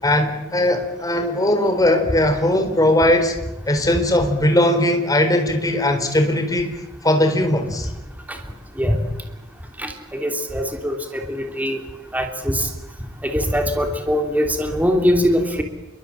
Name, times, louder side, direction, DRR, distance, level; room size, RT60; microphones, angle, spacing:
voice 1, 0.0-3.3 3.7-6.7 7.0-7.9, left 1 dB, 20° left, 6 dB, 4.1 m, -19 dB
voice 2, 9.8-11.8 12.1-12.7 13.2-15.6, equal, 10° right, 4 dB, 3.1 m, -22 dB
28.0 x 23.0 x 8.9 m, 0.97 s
head